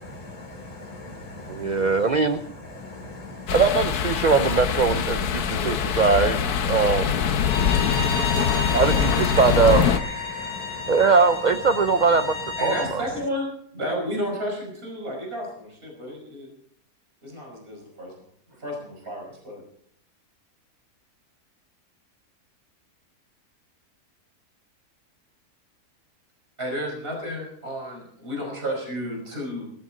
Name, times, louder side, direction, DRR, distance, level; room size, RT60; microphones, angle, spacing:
voice 1, 0.0-1.8 2.8-3.6 5.4-6.0 7.5-8.8 10.3-10.9, left 2 dB, 20° left, 1 dB, 3.4 m, -40 dB
voice 2, 1.5-2.4 3.5-6.4 6.6-7.1 8.7-12.3 12.6-13.0, right 4 dB, 55° right, 9 dB, 0.4 m, -21 dB
sound 1, 3.5-10.0, left 7 dB, 75° left, 1.4 m, -23 dB
voice 3, 6.4-6.8 12.6-16.5 17.2-18.1 18.6-19.6 26.6-29.6, equal, 35° right, 0 dB, 5.5 m, -32 dB
Bowed string instrument, 7.3-12.9, left 3 dB, 80° right, 8.0 m, -32 dB
19.5 x 14.0 x 3.9 m, 0.67 s
omnidirectional pair, 1.7 m